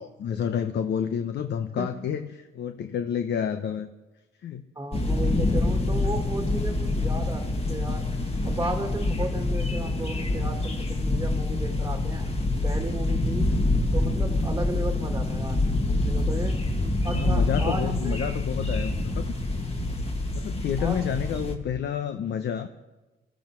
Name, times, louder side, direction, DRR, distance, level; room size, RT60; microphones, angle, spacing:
voice 1, 0.0-3.9 4.4-4.6 17.1-19.5 20.3-22.7, left 8 dB, 60° left, 8 dB, 0.9 m, -29 dB
voice 2, 1.8-2.1 4.8-8.1 8.4-12.3 12.6-13.6 13.9-18.2 20.8-21.0, right 2 dB, 15° right, 3 dB, 1.8 m, -35 dB
sound 1, 4.9-21.6, left 2 dB, 30° left, 2.2 m, -26 dB
21.0 x 14.0 x 4.5 m, 1.1 s
cardioid pair, 90°, 20 cm